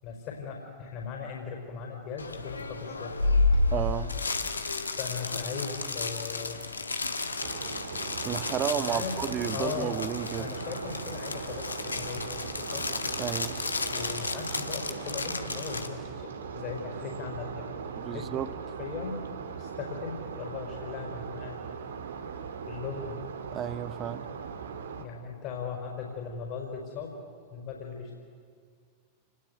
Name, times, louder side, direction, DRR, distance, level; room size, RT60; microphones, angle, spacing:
voice 1, 0.0-3.6 5.0-6.6 7.3-7.4 8.7-9.2 9.5-10.0 10.3-12.3 12.6-12.9 13.9-17.6 18.1-18.3 18.8-19.3 19.6-21.6 22.7-23.2 25.0-27.1 27.5-28.1, left 6 dB, 40° left, 5.0 m, -38 dB
sound 1, 2.2-15.9, left 3 dB, 80° left, 1.7 m, -32 dB
voice 2, 3.7-4.2 8.2-10.5 13.2-13.6 18.0-18.5 23.5-24.3, right 9 dB, 30° right, 0.9 m, -32 dB
sound 2, 7.4-25.0, right 6 dB, 65° right, 2.0 m, -39 dB
29.0 x 20.5 x 8.1 m
figure-of-eight pair, 90°, 0 cm